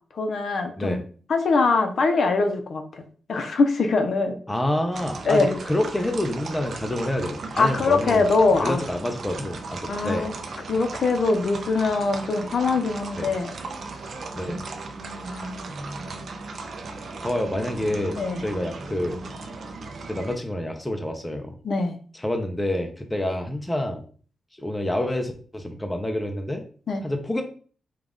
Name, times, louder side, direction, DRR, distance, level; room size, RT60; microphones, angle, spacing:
voice 1, 0.1-1.0 1.3-3.0 3.3-4.4 5.2-5.6 7.6-8.8 9.9-10.3 10.7-13.5 15.3-15.5 18.2-18.4 21.6-22.0 26.9-27.1, left 3 dB, 50° left, 6 dB, 0.6 m, -22 dB
voice 2, 4.5-8.3 8.6-10.3 13.2-13.3 14.3-14.6 17.2-19.2 20.1-21.5 22.1-24.0 24.6-26.6 27.0-27.4, left 1 dB, 10° left, 4 dB, 0.5 m, -27 dB
sound 1, 4.9-20.4, right 3 dB, 50° right, 0.6 m, -36 dB
5.1 x 2.3 x 3.6 m, 0.42 s
wide cardioid pair, 165°, 0 cm